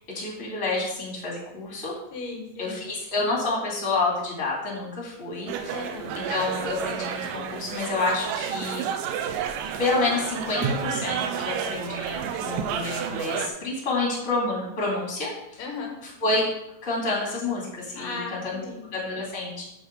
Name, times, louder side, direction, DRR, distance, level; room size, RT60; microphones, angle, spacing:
voice 1, 0.1-1.9 2.6-5.8 6.1-8.8 9.8-15.7 16.0-16.4 16.8-18.6 18.9-19.6, left 3 dB, 25° left, -3 dB, 2.7 m, -28 dB
voice 2, 2.1-2.8 5.7-6.2 15.6-16.0 18.0-18.9, left 4 dB, 75° left, 2 dB, 2.7 m, -36 dB
sound 1, 5.5-13.5, right 7 dB, 80° right, 2.3 m, -30 dB
8.0 x 8.0 x 4.6 m, 0.83 s
omnidirectional pair, 3.9 m